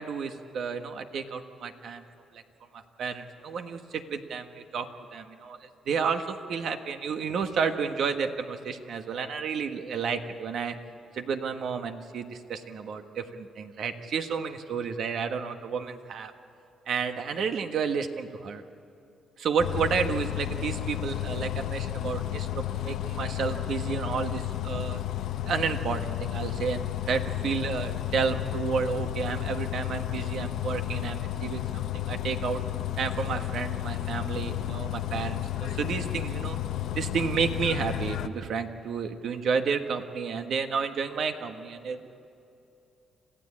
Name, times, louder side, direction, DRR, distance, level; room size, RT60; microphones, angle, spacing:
voice 1, 0.0-2.0 2.3-2.4 2.7-10.7 11.1-16.3 16.9-18.6 19.4-25.0 25.5-32.6 33.0-36.6 36.9-42.1, right 6 dB, 65° right, 7 dB, 1.5 m, -31 dB
Bus, 19.6-38.3, left 13 dB, 75° left, 0.7 m, -32 dB
27.0 x 15.5 x 8.7 m, 2.8 s
cardioid pair, 90°, 0 cm